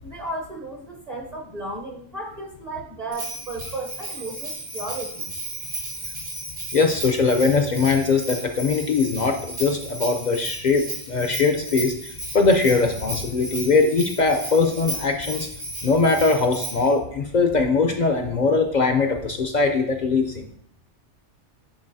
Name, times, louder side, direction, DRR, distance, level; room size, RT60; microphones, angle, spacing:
voice 1, 0.0-5.3, right 2 dB, 40° right, 0 dB, 0.7 m, -34 dB
Bell, 3.1-16.9, right 1 dB, 85° right, 2.7 m, -34 dB
voice 2, 6.7-11.9 12.3-15.5 15.8-20.4, left 4 dB, 55° left, 5 dB, 0.5 m, -21 dB
10.0 x 3.9 x 2.6 m, 0.69 s
omnidirectional pair, 1.3 m